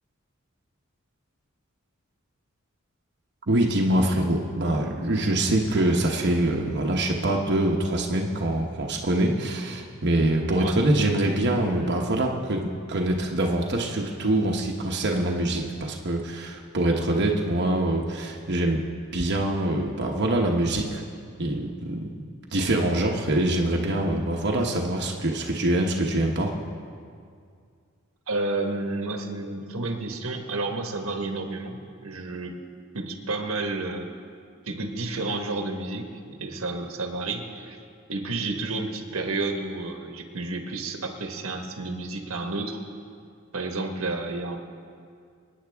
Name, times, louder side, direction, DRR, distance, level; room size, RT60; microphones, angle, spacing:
voice 1, 3.5-18.8 19.1-21.0 21.4-22.2 22.5-26.5, right 1 dB, 55° right, 0 dB, 1.0 m, -24 dB
voice 2, 28.3-32.5 32.9-34.1 34.7-36.1 36.4-37.8 38.1-42.8 43.5-44.6, right 2 dB, 85° right, 4 dB, 1.4 m, -31 dB
26.0 x 9.5 x 3.5 m, 2.2 s
head